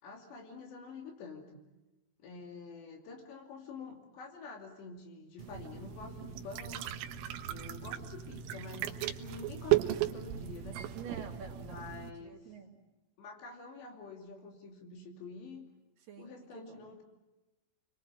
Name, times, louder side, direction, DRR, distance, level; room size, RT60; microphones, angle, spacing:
voice 1, 0.0-1.7 2.2-6.9 7.5-10.9 11.6-12.4 13.2-15.7 16.2-17.0, left 4 dB, 60° left, 3 dB, 4.8 m, -48 dB
sound 1, 5.4-12.1, right 13 dB, 90° right, 3.7 m, -35 dB
voice 2, 10.9-11.8 12.2-12.8 16.1-16.8, right 6 dB, 60° right, 1 dB, 3.9 m, -48 dB
28.5 x 22.5 x 7.6 m, 1.0 s
omnidirectional pair, 5.8 m